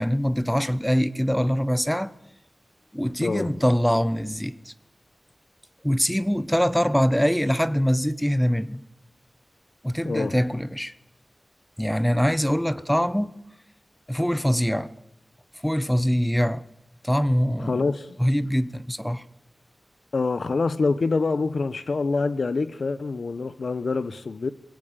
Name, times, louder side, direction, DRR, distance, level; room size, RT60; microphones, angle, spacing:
voice 1, 0.0-2.1 2.9-4.7 5.8-8.8 9.8-10.9 11.8-13.3 14.1-14.9 15.6-16.7 17.0-17.9 18.2-19.2, equal, 5° left, 1.1 m, -23 dB
voice 2, 3.2-3.5 10.0-10.3 17.6-18.2 20.1-24.5, left 4 dB, 80° left, 1.2 m, -26 dB
22.5 x 17.5 x 9.1 m
wide cardioid pair, 75°, 0 cm